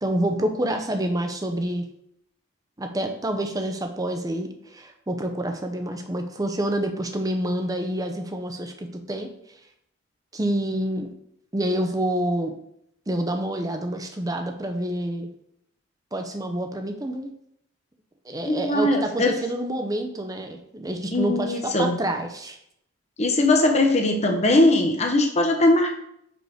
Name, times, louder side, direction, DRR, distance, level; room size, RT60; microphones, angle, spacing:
voice 1, 0.0-1.9 2.8-9.3 10.3-11.1 11.5-12.5 13.1-15.3 16.1-17.3 18.3-22.6, right 1 dB, 20° right, 6 dB, 0.6 m, -27 dB
voice 2, 18.4-19.3 21.1-22.0 23.2-26.0, left 2 dB, 35° left, 4 dB, 0.9 m, -20 dB
5.2 x 4.7 x 4.9 m, 0.73 s
head